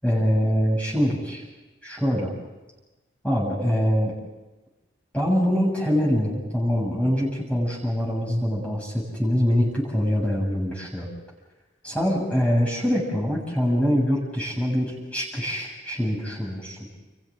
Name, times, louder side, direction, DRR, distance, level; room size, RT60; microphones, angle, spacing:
voice 1, 0.0-1.4 1.8-2.3 3.2-4.1 5.1-11.1 11.8-16.8, equal, 5° left, -4 dB, 7.0 m, -24 dB
30.0 x 29.5 x 3.8 m, 1.1 s
head